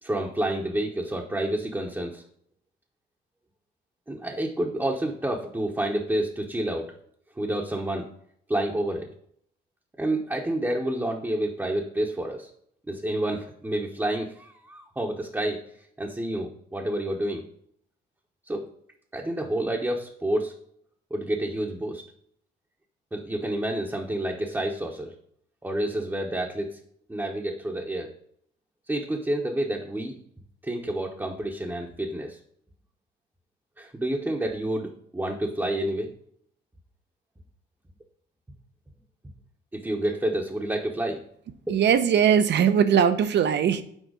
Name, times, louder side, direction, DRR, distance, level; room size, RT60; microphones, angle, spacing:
voice 1, 0.0-2.2 4.1-6.9 7.4-8.1 8.5-9.1 10.0-12.5 12.9-15.6 16.0-17.4 18.5-18.6 19.1-20.5 21.1-22.0 23.1-25.1 25.6-26.8 27.1-28.1 28.9-30.2 30.6-32.4 33.8-36.1 39.7-41.2 41.7-41.8, right 1 dB, 10° right, -1 dB, 0.9 m, -29 dB
voice 2, 41.7-43.8, right 8 dB, 60° right, 11 dB, 0.7 m, -20 dB
6.4 x 4.3 x 4.9 m, 0.68 s
cardioid pair, 90°, 20 cm